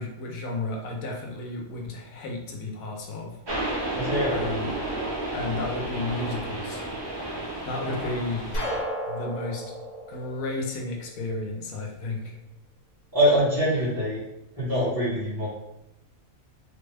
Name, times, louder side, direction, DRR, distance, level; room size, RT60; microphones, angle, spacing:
voice 1, 0.0-3.3 4.3-4.7 5.3-6.9 7.6-8.5 9.1-9.6 10.1-12.4, left 2 dB, 75° left, 1 dB, 1.1 m, -33 dB
sound 1, 3.5-8.8, right 1 dB, 40° right, 0.3 m, -31 dB
voice 2, 3.9-4.4 13.1-14.2 14.5-15.5, equal, 15° right, -12 dB, 1.1 m, -24 dB
sound 2, 8.5-11.3, equal, 40° left, 0.8 m, -33 dB
3.3 x 2.2 x 3.3 m, 0.86 s
omnidirectional pair, 1.5 m